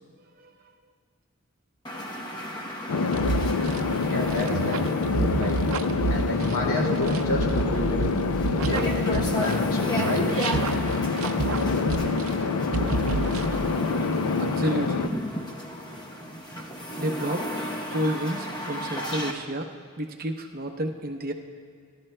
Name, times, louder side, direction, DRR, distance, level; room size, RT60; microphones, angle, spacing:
sound 1, 1.9-19.3, equal, 20° left, 0.8 m, -35 dB
sound 2, 2.9-15.1, left 4 dB, 85° left, 0.5 m, -26 dB
sound 3, 3.1-9.7 10.0-12.5 12.7-13.8, right 3 dB, 80° right, 0.6 m, -30 dB
voice 1, 4.1-4.8 5.3-5.6 6.1-8.3 8.6-10.3, left 1 dB, 70° left, -1 dB, 2.4 m, -30 dB
voice 2, 14.4-15.1 17.0-17.5 17.9-19.7 20.0-21.3, right 1 dB, 40° right, 3 dB, 0.8 m, -30 dB
28.0 x 12.0 x 2.2 m, 2.2 s
head